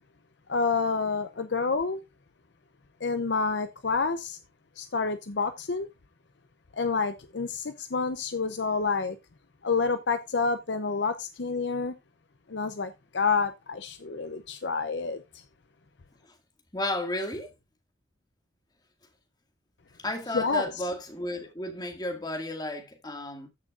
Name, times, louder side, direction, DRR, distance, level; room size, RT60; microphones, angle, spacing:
voice 1, 0.5-2.0 3.0-4.4 4.8-5.9 6.8-9.2 9.6-11.9 12.5-15.2 20.3-20.7, left 4 dB, 60° left, 0.6 m, -28 dB
voice 2, 16.7-17.5 20.0-23.5, left 1 dB, 20° left, 2.0 m, -33 dB
14.5 x 6.2 x 2.5 m
head